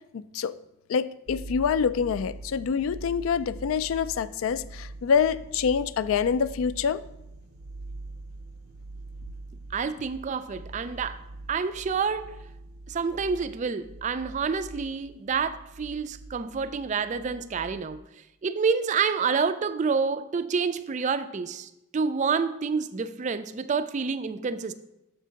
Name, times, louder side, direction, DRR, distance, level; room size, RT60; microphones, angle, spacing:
voice 1, 0.1-0.6 0.9-7.0, left 6 dB, 65° left, 16 dB, 0.3 m, -26 dB
sound 1, 1.3-18.0, right 2 dB, 80° right, 0.6 m, -43 dB
voice 2, 9.7-11.2 11.5-12.3 12.9-18.0 18.4-24.7, right 5 dB, 35° right, 13 dB, 0.3 m, -28 dB
6.6 x 4.5 x 6.3 m, 0.87 s
head